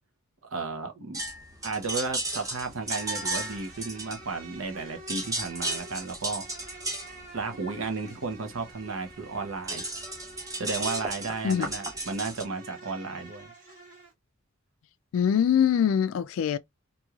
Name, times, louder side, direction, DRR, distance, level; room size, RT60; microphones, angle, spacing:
voice 1, 0.5-1.2 1.6-6.4 7.3-9.8 10.6-13.5, right 4 dB, 80° right, 0.9 m, -33 dB
sound 1, 1.1-4.7 5.0-12.4, right 2 dB, 15° right, 0.9 m, -34 dB
Insect, 2.7-14.1, right 2 dB, 40° right, 1.2 m, -48 dB
voice 2, 15.1-16.6, left 8 dB, 80° left, 0.3 m, -23 dB
3.0 x 2.6 x 2.3 m
head